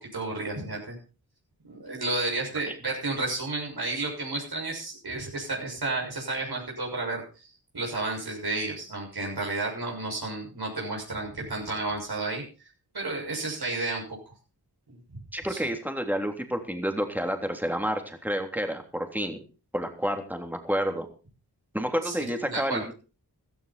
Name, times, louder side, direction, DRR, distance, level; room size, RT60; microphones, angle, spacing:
voice 1, 0.1-1.0 1.7-7.5 7.7-12.4 12.9-14.3 14.9-15.0 15.5-15.7 22.0-22.8, right 2 dB, 75° right, -2 dB, 6.8 m, -32 dB
voice 2, 15.3-19.4 19.7-21.1 21.7-22.9, equal, 5° right, 4 dB, 3.4 m, -29 dB
15.0 x 14.5 x 4.4 m, 0.35 s
wide cardioid pair, 65°, 39 cm